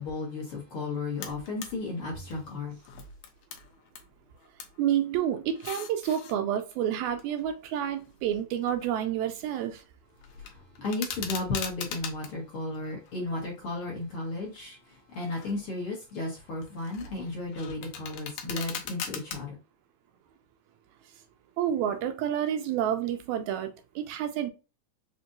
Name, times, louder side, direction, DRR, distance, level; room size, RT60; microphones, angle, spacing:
voice 1, 0.0-2.8 10.3-19.6, left 2 dB, 55° left, 1.7 m, -34 dB
sound 1, 1.2-1.7 2.1-4.1 4.3-4.8 5.4-6.3 7.0-9.2 9.4-9.8 10.2-12.3 12.8-13.8 14.3-14.6 15.1-15.6 16.0-19.4, left 7 dB, 75° left, 1.9 m, -41 dB
voice 2, 4.8-9.8 21.6-24.5, right 10 dB, 80° right, 1.8 m, -29 dB
5.3 x 2.6 x 2.5 m
omnidirectional pair, 3.5 m